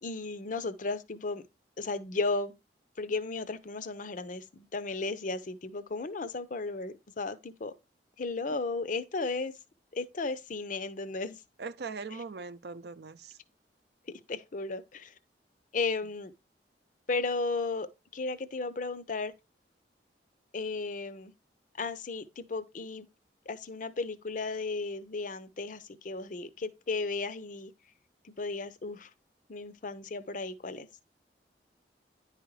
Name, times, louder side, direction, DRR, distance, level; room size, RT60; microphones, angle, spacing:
voice 1, 0.0-1.4 1.8-2.5 3.0-7.7 8.2-9.5 9.9-11.4 14.1-15.1 15.7-16.3 17.1-17.9 18.1-19.3 20.5-21.3 21.8-23.1 23.5-27.7 28.2-29.1 29.5-30.9, left 3 dB, 45° left, 0.6 m, -34 dB
voice 2, 11.6-13.4, right 4 dB, 65° right, 0.5 m, -41 dB
10.0 x 4.9 x 3.2 m
head